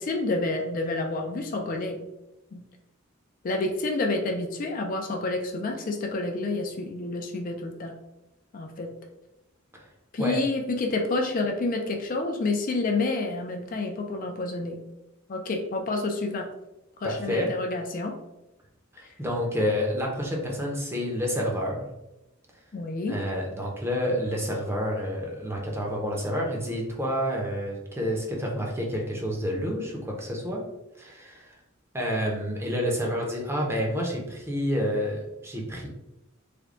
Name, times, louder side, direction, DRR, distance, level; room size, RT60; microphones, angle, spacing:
voice 1, 0.0-2.0 2.5-2.6 3.4-8.0 8.5-8.9 10.1-14.8 15.3-16.5 17.0-18.1 22.7-23.2, left 2 dB, 45° left, 4 dB, 0.4 m, -29 dB
voice 2, 17.0-17.5 18.9-21.9 23.1-30.6 31.0-31.6 31.9-35.9, equal, 10° right, -1 dB, 0.7 m, -29 dB
3.4 x 2.2 x 3.6 m, 0.93 s
head